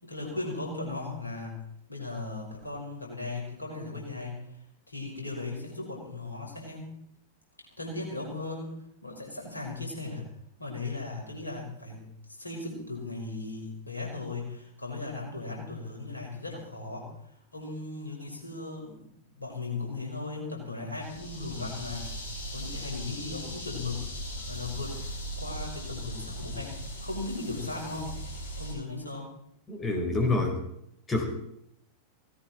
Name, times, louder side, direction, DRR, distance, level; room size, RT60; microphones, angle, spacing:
voice 1, 0.0-1.6 1.9-4.6 4.9-6.9 7.8-10.3 10.6-17.1 17.5-22.1 22.5-25.0 25.4-28.2 28.6-29.3, left 3 dB, 80° left, -1 dB, 5.6 m, -37 dB
sound 1, 21.0-28.7, equal, 60° left, 6.7 m, -39 dB
voice 2, 29.7-30.6 31.1-31.3, left 2 dB, 20° left, 2 dB, 4.9 m, -27 dB
18.0 x 17.0 x 4.5 m, 0.73 s
figure-of-eight pair, 90°, 0 cm